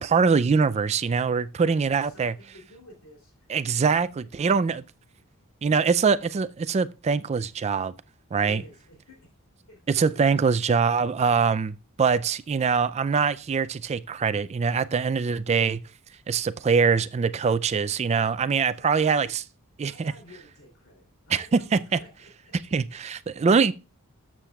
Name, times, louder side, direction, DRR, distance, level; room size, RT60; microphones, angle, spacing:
voice 1, 0.0-2.3 3.5-4.8 5.6-7.9 8.3-8.6 9.9-11.7 12.0-15.8 16.3-19.4 19.8-20.1 21.3-21.4 21.7-21.8 22.7-23.7, right 5 dB, 30° right, 0.3 m, -23 dB
voice 2, 1.5-3.6 8.4-9.2 9.7-10.5 16.7-17.1 18.8-19.3 19.8-22.6 22.9-23.0, left 1 dB, 70° left, 2.8 m, -51 dB
13.0 x 7.5 x 2.3 m
head